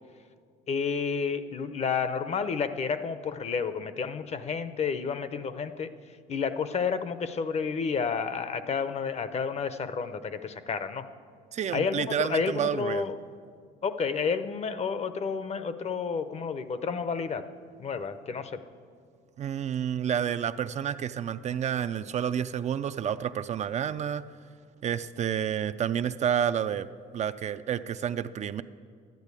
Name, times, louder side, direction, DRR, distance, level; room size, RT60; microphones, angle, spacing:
voice 1, 0.7-5.9 6.3-11.1 11.7-13.2 13.8-17.4 17.8-18.6, left 5 dB, 40° left, 11 dB, 0.8 m, -30 dB
voice 2, 11.5-13.1 19.4-24.2 24.8-26.9 27.1-28.6, right 9 dB, 45° right, 12 dB, 0.4 m, -29 dB
11.5 x 10.5 x 8.3 m, 2.1 s
cardioid pair, 110°, 17 cm